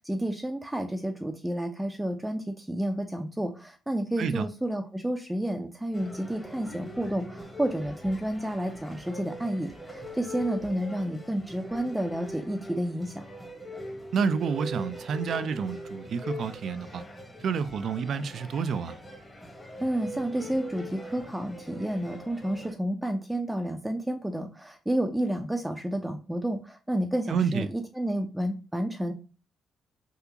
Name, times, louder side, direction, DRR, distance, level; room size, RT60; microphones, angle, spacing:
voice 1, 0.0-13.2 19.8-29.1, right 1 dB, 10° right, 0.5 m, -30 dB
sound 1, 5.9-22.7, left 1 dB, 15° left, 1.2 m, -42 dB
voice 2, 14.1-17.0 17.4-19.0 27.3-27.7, right 6 dB, 65° right, 0.4 m, -29 dB
3.6 x 2.4 x 2.8 m
supercardioid pair, 60°, 0 cm